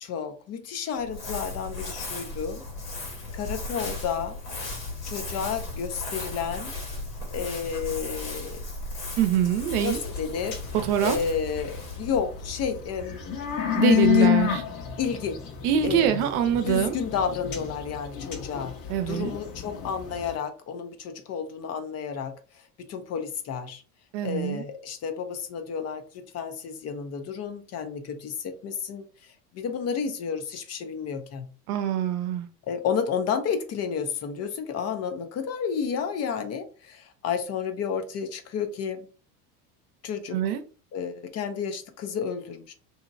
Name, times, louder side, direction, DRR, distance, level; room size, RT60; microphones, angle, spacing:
voice 1, 0.0-2.6 3.3-4.4 5.1-6.7 7.3-8.6 9.8-10.6 11.0-13.4 13.9-14.3 15.0-15.4 15.8-16.1 16.7-18.7 19.1-22.6 22.9-23.8 24.2-31.5 32.6-39.1 40.0-40.4 40.9-42.7, left 6 dB, 35° left, 0.5 m, -31 dB
Crumpling crinkling, 1.0-13.4, left 2 dB, 90° left, 1.4 m, -36 dB
voice 2, 9.2-10.0 10.8-11.2 13.7-14.6 15.6-16.9 18.9-19.3 24.1-24.6 31.7-32.5 40.3-40.6, right 9 dB, 70° right, 0.7 m, -24 dB
sound 1, 9.6-11.6 12.1-20.3, left 11 dB, 65° left, 1.1 m, -27 dB
2.8 x 2.7 x 2.5 m
hypercardioid pair, 80°, 46 cm